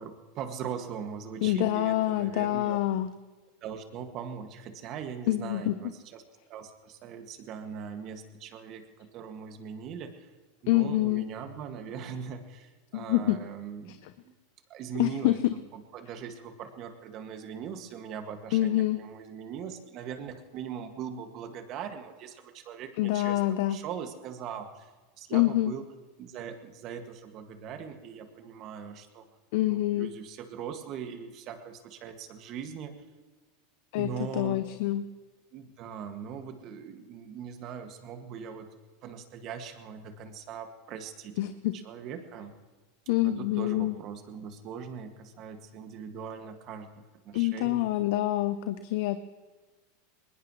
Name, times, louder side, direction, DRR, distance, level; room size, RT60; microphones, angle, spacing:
voice 1, 0.0-2.8 3.6-6.2 6.5-10.3 10.6-14.0 14.3-14.4 14.7-15.4 15.7-23.4 23.7-24.9 25.2-25.9 26.2-29.3 29.7-33.0 34.0-34.6 35.5-38.7 39.0-41.4 41.7-42.5 43.2-47.9, right 7 dB, 50° right, 6 dB, 2.1 m, -40 dB
voice 2, 1.4-3.1 5.3-5.7 10.7-11.2 12.9-13.4 15.0-15.3 18.5-19.0 23.0-23.8 25.3-25.7 29.5-30.1 33.9-35.0 41.4-41.7 43.1-44.0 47.3-49.2, left 15 dB, 65° left, 11 dB, 0.7 m, -26 dB
21.5 x 20.0 x 3.2 m, 1.3 s
hypercardioid pair, 100°, 0 cm